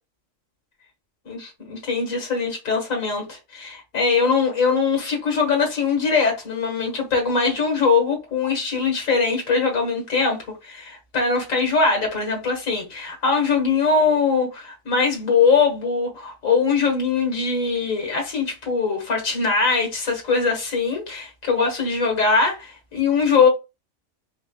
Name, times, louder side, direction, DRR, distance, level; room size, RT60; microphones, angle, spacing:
voice 1, 1.3-23.5, left 5 dB, 80° left, 2.0 m, -22 dB
4.9 x 3.3 x 2.3 m
omnidirectional pair, 1.4 m